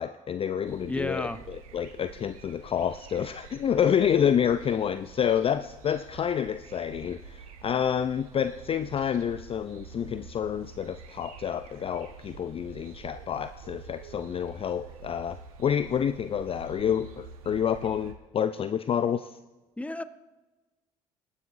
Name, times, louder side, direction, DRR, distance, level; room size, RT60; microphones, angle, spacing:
voice 1, 0.0-19.4, left 8 dB, 30° left, 12 dB, 0.4 m, -28 dB
sound 1, 0.6-18.1, right 5 dB, 85° right, 1.0 m, -47 dB
voice 2, 0.8-1.4 19.8-20.0, left 2 dB, 5° left, 12 dB, 0.8 m, -32 dB
20.0 x 9.7 x 2.5 m, 1.1 s
hypercardioid pair, 60°, 18 cm